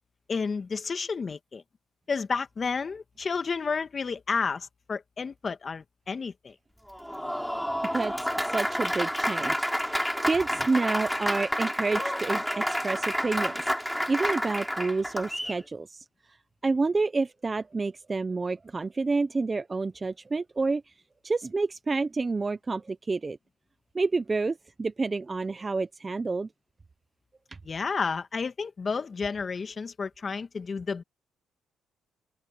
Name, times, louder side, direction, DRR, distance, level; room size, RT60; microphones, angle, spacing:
voice 1, 0.3-1.6 2.1-6.6 27.6-31.0, left 5 dB, 40° left, 1.9 m, -31 dB
Applause, 6.9-15.6, equal, ahead, 6.7 m, -29 dB
voice 2, 8.4-16.0 16.6-20.9 21.2-23.4 23.9-26.5, right 3 dB, 30° right, 1.0 m, -29 dB
open air
cardioid pair, 70°, 0 cm